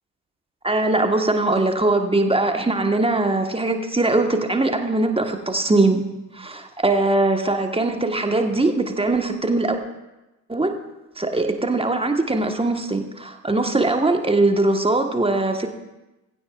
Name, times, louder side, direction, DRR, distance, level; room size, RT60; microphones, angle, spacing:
voice 1, 0.6-6.0 6.3-9.8 10.5-10.7 11.2-15.7, right 2 dB, 10° right, 5 dB, 1.5 m, -21 dB
19.5 x 16.0 x 2.5 m, 1.0 s
figure-of-eight pair, 50°, 49 cm